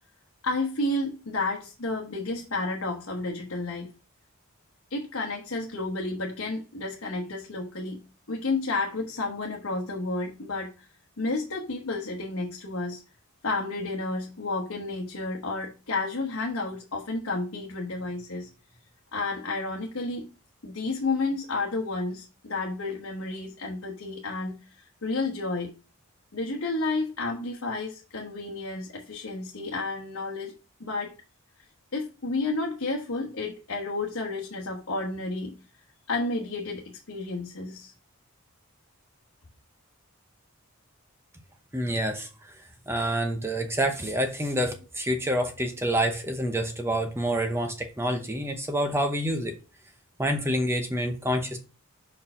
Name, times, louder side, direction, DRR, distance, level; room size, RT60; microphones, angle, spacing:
voice 1, 0.4-3.9 4.9-8.0 8.3-10.9 11.2-13.0 13.4-18.5 19.1-20.3 20.6-25.7 26.3-31.1 31.9-35.5 36.1-37.9, left 3 dB, 75° left, 1.1 m, -31 dB
voice 2, 41.7-42.3 42.9-49.5 50.2-51.6, right 1 dB, 10° right, 0.7 m, -27 dB
5.4 x 4.6 x 5.4 m
head